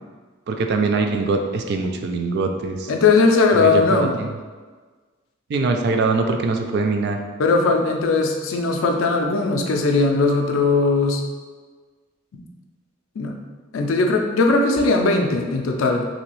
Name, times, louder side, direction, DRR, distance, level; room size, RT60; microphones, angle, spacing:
voice 1, 0.5-2.9 3.5-4.3 5.5-7.2, right 3 dB, 55° right, 4 dB, 0.3 m, -22 dB
voice 2, 2.9-4.2 7.4-11.2 13.2-13.4 13.7-16.1, left 3 dB, 75° left, 3 dB, 0.4 m, -19 dB
3.0 x 2.7 x 2.9 m, 1.4 s
head